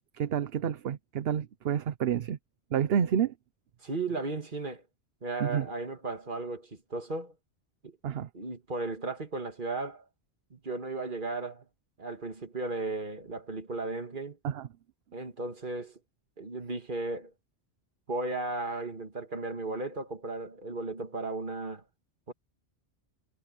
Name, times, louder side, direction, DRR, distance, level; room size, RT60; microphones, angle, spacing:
voice 1, 0.1-2.4 2.7-3.3 5.4-5.7 8.0-8.3 14.4-14.7, right 8 dB, 65° right, 0.9 m, -29 dB
voice 2, 3.8-4.8 5.2-7.3 7.8-8.0 8.3-10.0 10.5-11.6 12.0-14.4 15.1-16.0 16.4-17.3 18.1-21.8 22.3-22.4, right 3 dB, 45° right, 2.2 m, -35 dB
omnidirectional pair, 1.1 m